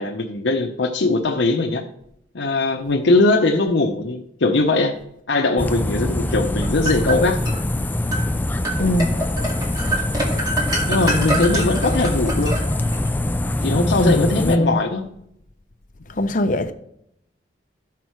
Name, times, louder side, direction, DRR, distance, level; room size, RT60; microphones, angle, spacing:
voice 1, 0.0-1.8 2.3-4.9 5.3-7.4 10.9-12.5 13.6-15.1, left 2 dB, 80° left, 0.8 m, -20 dB
sound 1, 5.6-14.6, left 1 dB, 10° left, 0.4 m, -23 dB
sound 2, 6.3-7.6 8.1-8.3 8.6-13.1, right 1 dB, 20° right, 2.1 m, -26 dB
voice 2, 8.8-9.1 14.0-14.8 16.2-16.7, left 1 dB, 45° left, 0.7 m, -20 dB
13.5 x 6.0 x 4.6 m
head